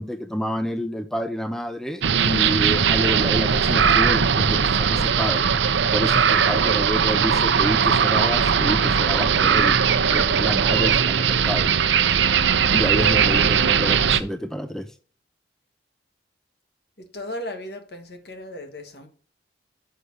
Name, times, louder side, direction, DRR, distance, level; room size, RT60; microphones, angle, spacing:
voice 1, 0.0-5.5 5.9-9.8 10.1-11.7 12.7-14.9, equal, 5° left, 0.4 m, -28 dB
sound 1, 2.0-14.2, right 7 dB, 85° right, 0.6 m, -19 dB
voice 2, 17.0-19.1, left 1 dB, 65° left, 1.6 m, -36 dB
6.6 x 5.6 x 6.1 m
head